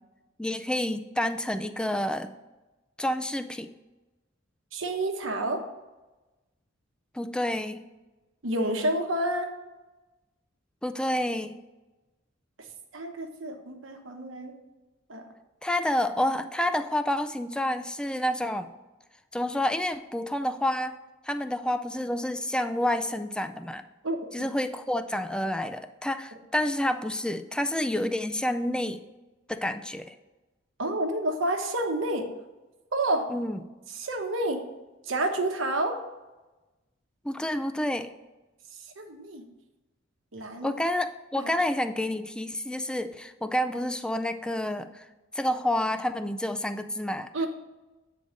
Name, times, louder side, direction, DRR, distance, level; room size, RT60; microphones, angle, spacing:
voice 1, 0.4-2.3 3.0-3.7 7.1-7.8 10.8-11.6 15.6-18.7 19.3-21.0 21.2-23.8 24.3-29.0 29.5-30.1 33.3-33.6 37.2-38.1 40.6-45.1 45.3-47.3, left 1 dB, 5° left, 9 dB, 0.3 m, -29 dB
voice 2, 4.7-5.6 8.4-9.5 12.9-14.5 15.1-15.2 24.0-24.5 30.8-32.3 32.9-33.2 34.0-34.6 35.1-36.0 39.0-39.4 40.3-40.7 41.4-41.5 47.3-47.5, right 1 dB, 75° right, 4 dB, 1.0 m, -29 dB
8.5 x 3.9 x 5.0 m, 1.1 s
head